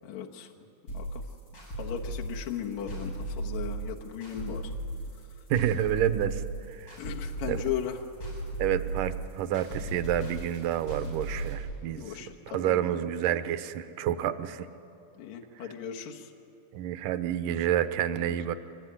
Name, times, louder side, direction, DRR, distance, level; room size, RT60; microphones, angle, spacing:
voice 1, 0.0-0.5 0.9-1.2 1.8-4.7 7.0-8.0 12.0-13.1 15.2-16.3 18.2-18.4, left 9 dB, 70° left, 1 dB, 2.7 m, -37 dB
sound 1, 0.9-11.5, right 2 dB, 40° left, 8.8 m, -36 dB
voice 2, 5.5-6.4 6.7-7.0 7.5-7.6 8.6-12.1 12.5-14.7 16.7-18.5, right 11 dB, 90° right, 12 dB, 2.4 m, -29 dB
25.0 x 20.5 x 10.0 m, 2.8 s
omnidirectional pair, 3.6 m